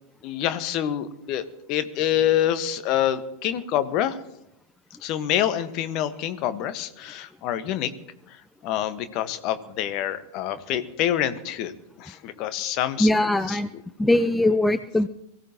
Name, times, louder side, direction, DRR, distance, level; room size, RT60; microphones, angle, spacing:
voice 1, 0.2-1.4 1.7-4.2 5.0-7.9 8.6-11.7 12.0-13.1 13.5-13.6, left 11 dB, 40° left, 11 dB, 1.4 m, -26 dB
voice 2, 13.0-13.7 14.0-15.1, left 1 dB, 5° left, 13 dB, 0.5 m, -21 dB
23.5 x 16.0 x 3.0 m, 0.85 s
figure-of-eight pair, 90°, 0 cm